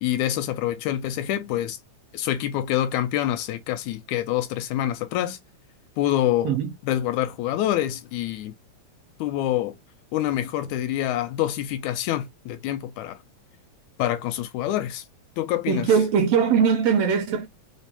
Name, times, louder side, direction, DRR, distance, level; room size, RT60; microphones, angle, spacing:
voice 1, 0.0-1.8 2.1-5.4 6.0-6.6 6.8-8.5 9.2-9.8 10.1-13.2 14.0-15.0 15.4-15.9, left 12 dB, 90° left, 2.0 m, -26 dB
voice 2, 15.7-17.5, right 7 dB, 75° right, 1.5 m, -20 dB
5.1 x 2.2 x 2.7 m
omnidirectional pair, 3.3 m